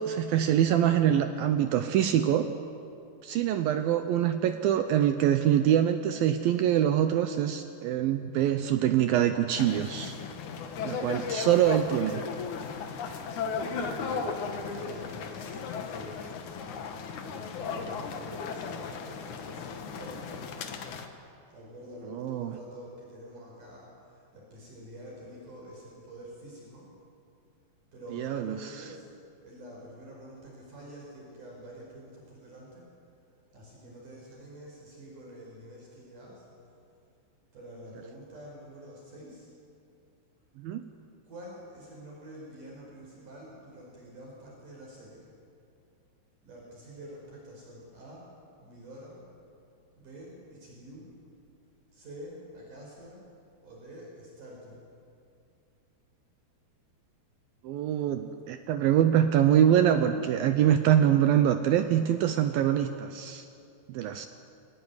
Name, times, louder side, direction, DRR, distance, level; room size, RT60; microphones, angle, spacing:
voice 1, 0.0-2.5 3.2-10.1 10.8-12.2 22.1-22.6 28.2-28.6 40.6-40.8 57.6-63.5 63.9-64.3, right 10 dB, 75° right, 8 dB, 2.2 m, -24 dB
sound 1, 9.5-21.1, left 5 dB, 60° left, 2.2 m, -36 dB
voice 2, 13.6-16.5 17.2-20.5 21.5-26.9 27.9-29.1 29.4-32.9 33.5-36.5 37.5-39.5 41.3-45.3 46.4-48.3 48.6-49.2 50.0-51.2 51.9-53.3 53.6-54.9, equal, 45° right, -3 dB, 6.4 m, -47 dB
24.0 x 18.0 x 9.8 m, 2.5 s
omnidirectional pair, 5.0 m